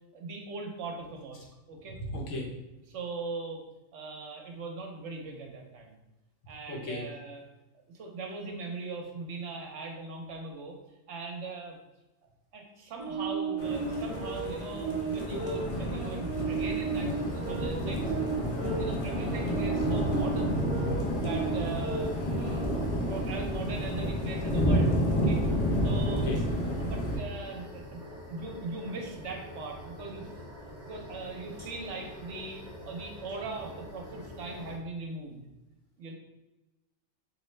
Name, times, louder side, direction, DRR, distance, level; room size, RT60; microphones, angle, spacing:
voice 1, 0.1-2.0 2.9-3.7 3.9-6.0 6.5-7.4 7.9-10.7 11.1-11.8 12.5-18.0 18.6-20.7 21.2-22.8 23.1-25.4 25.8-26.3 26.8-28.0 28.3-30.3 30.8-32.6 32.8-35.4 36.0-36.1, right 3 dB, 70° right, 2 dB, 1.0 m, -40 dB
voice 2, 1.9-2.5 6.7-7.0 26.1-26.4, left 1 dB, 70° left, -1 dB, 1.2 m, -35 dB
sound 1, 13.0-22.8, right 5 dB, 45° right, 0.4 m, -35 dB
sound 2, 13.6-27.2, equal, 40° left, 0.5 m, -30 dB
sound 3, 16.4-34.8, left 1 dB, 10° right, 1.2 m, -45 dB
4.0 x 2.8 x 3.2 m, 1.0 s
omnidirectional pair, 1.3 m